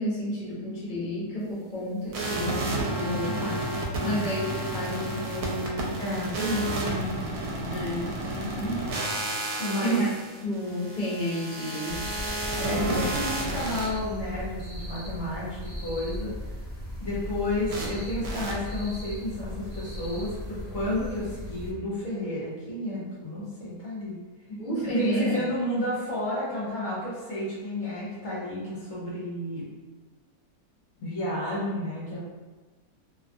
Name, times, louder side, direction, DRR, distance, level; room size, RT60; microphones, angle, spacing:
voice 1, 0.0-6.0 6.8-7.2 7.7-8.8 9.8-10.1 10.4-12.1 12.7-13.0 13.4-13.8 24.5-25.5, equal, 40° left, -8 dB, 0.9 m, -31 dB
sound 1, 2.1-13.9 17.7-17.9 18.2-18.5, right 1 dB, 75° right, 1.0 m, -31 dB
voice 2, 4.0-4.4 6.0-7.3 7.6-7.8 9.6-10.0 12.6-16.3 17.0-24.2 24.8-29.6 31.0-32.2, left 1 dB, 65° left, -7 dB, 1.1 m, -31 dB
sound 2, 11.9-21.7, equal, 10° right, 1.0 m, -37 dB
2.6 x 2.3 x 2.5 m, 1.3 s
omnidirectional pair, 1.6 m